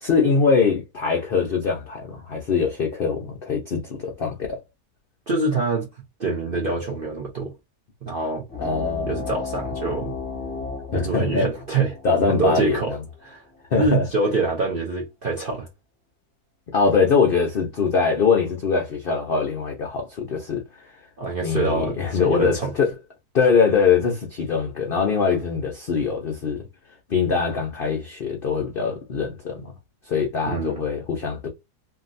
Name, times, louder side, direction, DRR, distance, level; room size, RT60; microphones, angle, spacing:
voice 1, 0.0-4.6 8.6-9.1 10.9-11.5 12.0-13.0 13.7-14.1 16.7-20.9 21.4-22.9 23.3-26.6 27.1-29.7 30.0-31.5, left 5 dB, 75° left, 0.5 m, -22 dB
voice 2, 5.3-5.9 6.2-7.5 8.0-8.4 9.1-10.1 10.9-12.0 12.3-12.9 13.2-13.4 13.8-15.7 21.2-22.7 30.4-30.9, right 3 dB, 60° right, 0.6 m, -25 dB
sound 1, 8.5-13.6, left 5 dB, 20° left, 0.7 m, -34 dB
2.8 x 2.6 x 2.5 m
omnidirectional pair, 1.8 m